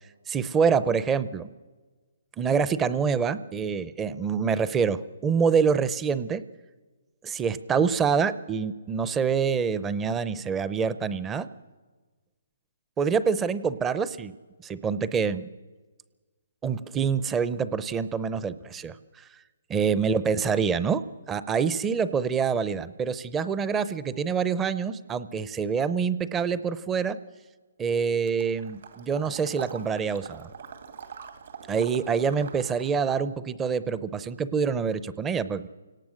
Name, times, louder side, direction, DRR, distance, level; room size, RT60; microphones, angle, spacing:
voice 1, 0.3-1.5 2.4-6.4 7.2-11.5 13.0-14.4 14.6-15.5 16.6-19.3 19.7-21.0 21.3-27.2 27.8-30.5 31.7-35.7, right 6 dB, 10° right, 15 dB, 0.6 m, -26 dB
Water / Liquid, 28.3-33.1, right 7 dB, 60° right, 2.4 m, -44 dB
28.5 x 18.0 x 6.4 m, 1.3 s
hypercardioid pair, 160°, 0 cm